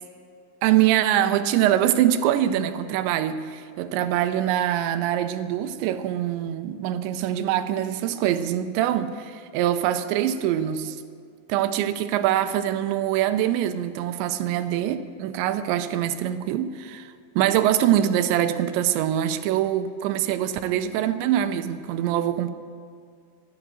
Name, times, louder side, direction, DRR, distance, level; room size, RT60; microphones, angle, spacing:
voice 1, 0.6-11.0 11.5-22.5, right 11 dB, 80° right, 10 dB, 2.8 m, -24 dB
13.0 x 12.0 x 7.4 m, 2.2 s
omnidirectional pair, 5.4 m